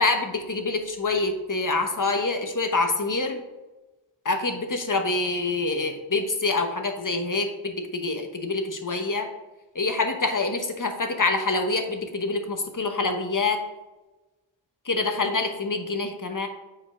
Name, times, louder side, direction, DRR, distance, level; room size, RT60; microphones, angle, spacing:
voice 1, 0.0-3.4 4.2-9.3 9.7-13.6 14.9-16.5, left 3 dB, 40° left, 5 dB, 1.0 m, -26 dB
7.5 x 4.7 x 3.6 m, 1.1 s
wide cardioid pair, 45°, 47 cm